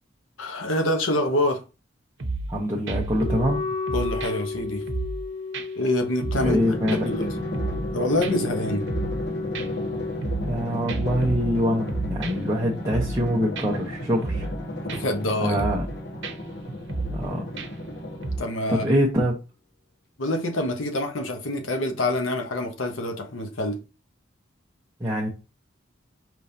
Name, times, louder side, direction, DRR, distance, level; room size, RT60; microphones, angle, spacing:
voice 1, 0.4-1.6 3.9-4.8 5.8-6.6 6.9-7.3 7.9-8.8 14.8-15.7 18.4-18.9 20.2-23.8, left 1 dB, 85° left, 0.9 m, -26 dB
sound 1, 2.2-2.6 2.9-3.6 3.9-5.2 5.5-5.7 6.0-6.6 6.9-7.9 8.2-8.3 8.7-9.3 9.6-10.6 10.9-12.6 12.9-13.3 13.6-13.7 14.0-14.6 14.9-15.2 15.5-15.9 16.2-16.3 16.7-17.3 17.6-17.9 18.2-18.4, right 3 dB, 65° right, 0.8 m, -31 dB
voice 2, 2.5-3.6 6.4-7.1 10.4-14.5 15.4-15.9 17.1-17.5 18.7-19.4 25.0-25.3, equal, 15° right, 0.7 m, -24 dB
Wind instrument woodwind instrument, 3.1-10.2, left 4 dB, 40° left, 0.3 m, -33 dB
Drum, 6.3-18.7, equal, 60° left, 1.1 m, -33 dB
5.2 x 3.1 x 2.7 m
head